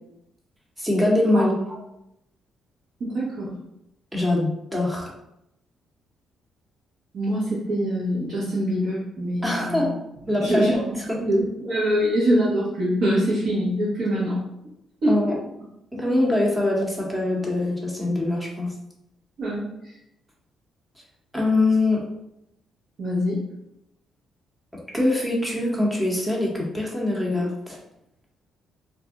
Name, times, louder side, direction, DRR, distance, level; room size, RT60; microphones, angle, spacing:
voice 1, 0.8-1.6 4.1-5.1 9.4-10.0 10.3-10.8 11.1-11.2 15.1-15.3 15.9-18.7 21.3-22.1 24.9-27.8, left 2 dB, 10° right, -2 dB, 0.9 m, -23 dB
voice 2, 3.0-3.5 7.1-9.9 10.4-14.4 15.0-15.3 19.4-19.9 23.0-23.4, equal, 65° right, -9 dB, 1.0 m, -24 dB
2.5 x 2.0 x 3.6 m, 0.85 s
cardioid pair, 90°, 0 cm